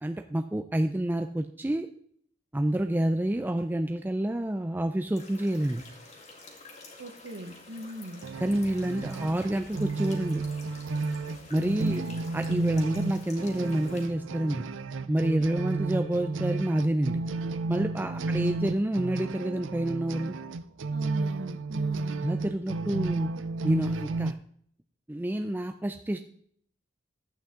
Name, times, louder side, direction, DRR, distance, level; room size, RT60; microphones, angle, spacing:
voice 1, 0.0-1.9 2.5-5.8 8.4-10.4 11.5-12.0 12.3-14.6 15.1-17.2 17.7-20.4 22.2-23.3 23.6-24.4 25.1-26.2, right 1 dB, 10° right, 6 dB, 0.4 m, -28 dB
sound 1, 5.1-14.1, left 2 dB, 35° left, 2.0 m, -49 dB
voice 2, 7.0-8.2 11.8-12.1 18.1-18.5 20.9-22.3, right 1 dB, 65° right, 6 dB, 1.0 m, -40 dB
sound 2, 8.2-24.3, right 3 dB, 80° right, 0.5 m, -32 dB
12.5 x 8.5 x 3.7 m, 0.64 s
head